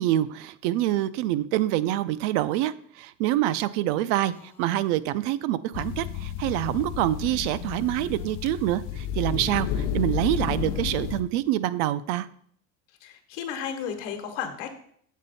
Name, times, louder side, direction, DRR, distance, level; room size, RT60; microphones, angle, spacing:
voice 1, 0.0-12.3, right 14 dB, 70° right, 16 dB, 0.5 m, -26 dB
Female speech woman speaking, 4.3-4.9 6.4-8.7, left 1 dB, 5° left, 0.4 m, -48 dB
sound 1, 5.7-11.2, left 9 dB, 65° left, 0.7 m, -31 dB
voice 2, 13.0-14.7, left 8 dB, 85° left, 6 dB, 1.2 m, -33 dB
7.3 x 4.2 x 4.0 m, 0.63 s
cardioid pair, 170°, 36 cm